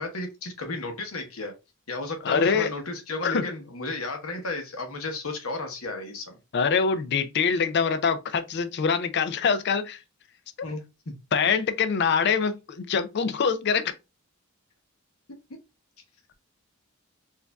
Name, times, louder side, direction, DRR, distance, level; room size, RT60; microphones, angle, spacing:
voice 1, 0.0-1.5 1.9-6.3 10.6-10.8 11.1-11.2, left 2 dB, 80° left, 1.0 m, -33 dB
voice 2, 2.2-2.7 3.2-3.4 6.5-10.0 11.3-13.9, left 6 dB, 55° left, 0.4 m, -24 dB
4.5 x 2.5 x 2.2 m
head